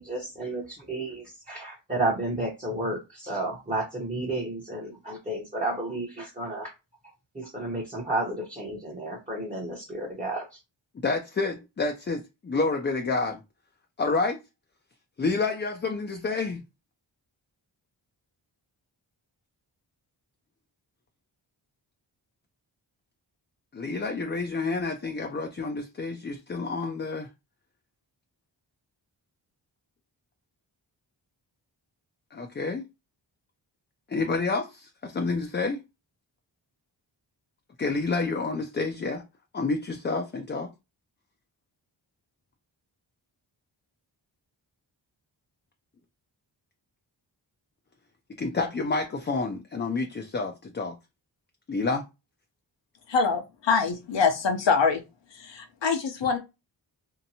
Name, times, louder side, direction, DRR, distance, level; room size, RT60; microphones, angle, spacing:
voice 1, 0.0-6.7 7.3-10.6, right 2 dB, 15° right, 0.8 m, -32 dB
voice 2, 11.0-13.4 14.0-14.4 15.2-16.6 23.7-27.3 32.3-32.8 34.1-35.8 37.8-39.2 39.5-40.7 48.4-51.0 51.7-52.0, left 3 dB, 25° left, 0.4 m, -29 dB
voice 3, 53.1-55.0 55.3-56.4, left 5 dB, 65° left, 0.7 m, -24 dB
2.8 x 2.1 x 2.7 m
cardioid pair, 45°, 46 cm